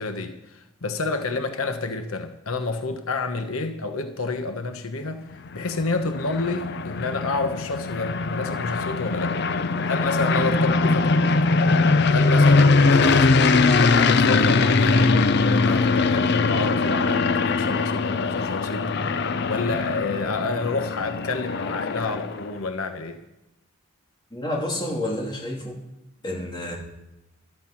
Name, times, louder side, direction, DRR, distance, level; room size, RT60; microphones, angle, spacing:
voice 1, 0.0-5.2 5.5-9.4 9.9-11.8 12.1-18.9 19.5-23.2, left 3 dB, 80° left, 7 dB, 1.1 m, -29 dB
sound 1, 5.3-22.5, left 3 dB, 50° left, 0.6 m, -21 dB
voice 2, 24.3-25.8 26.2-26.8, left 1 dB, 20° left, -2 dB, 2.6 m, -29 dB
14.5 x 13.0 x 5.9 m, 0.95 s
head